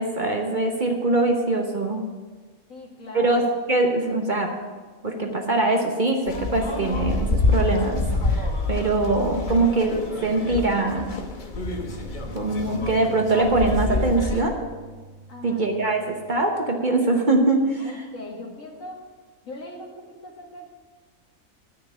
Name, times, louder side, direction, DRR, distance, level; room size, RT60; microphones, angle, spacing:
voice 1, 0.0-2.0 3.1-3.4 3.7-4.5 5.0-8.0 8.3-11.1 12.3-14.6 15.4-18.0, right 2 dB, 40° right, 2 dB, 1.1 m, -23 dB
voice 2, 2.7-3.4 12.7-12.8 15.3-15.8 17.8-19.0 19.4-20.7, left 2 dB, 70° left, -1 dB, 2.3 m, -40 dB
sound 1, 6.3-14.4, left 3 dB, 40° left, 1.1 m, -27 dB
sound 2, 11.7-16.7, right 3 dB, 55° right, 2.2 m, -43 dB
10.5 x 6.4 x 8.2 m, 1.4 s
omnidirectional pair, 1.4 m